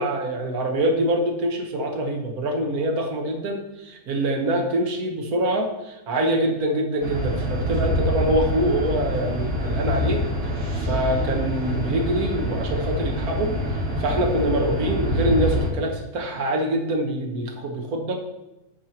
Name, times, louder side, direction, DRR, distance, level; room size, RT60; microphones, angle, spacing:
voice 1, 0.0-10.2 10.7-13.5 14.0-18.2, right 1 dB, 80° right, 2 dB, 1.6 m, -25 dB
sound 1, 7.0-15.7, equal, 40° right, 2.5 m, -26 dB
12.0 x 4.5 x 4.4 m, 0.99 s
omnidirectional pair, 1.5 m